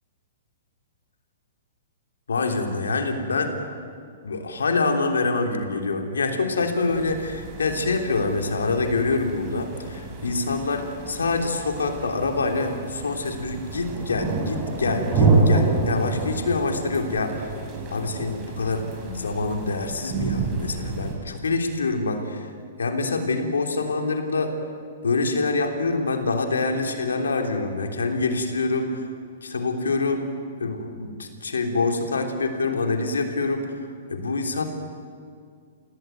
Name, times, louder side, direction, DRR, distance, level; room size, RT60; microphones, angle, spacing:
voice 1, 2.3-3.6 4.2-17.5 17.9-22.5 22.8-24.5 25.0-29.1 29.4-30.3 30.6-34.7, left 3 dB, 90° left, 4 dB, 3.4 m, -26 dB
sound 1, 6.9-21.2, right 3 dB, 30° right, 7.0 m, -28 dB
26.0 x 17.0 x 9.4 m, 2.2 s
hypercardioid pair, 130°, 0 cm